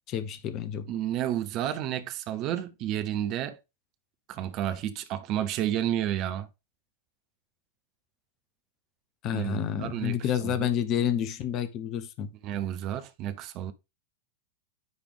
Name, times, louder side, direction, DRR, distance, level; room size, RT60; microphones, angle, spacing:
voice 1, 0.1-0.9 9.2-12.3, left 9 dB, 35° left, 0.8 m, -29 dB
voice 2, 0.9-3.6 4.3-6.5 9.3-10.7 12.4-13.7, right 11 dB, 40° right, 0.8 m, -31 dB
9.6 x 3.4 x 3.5 m
figure-of-eight pair, 90°, 0 cm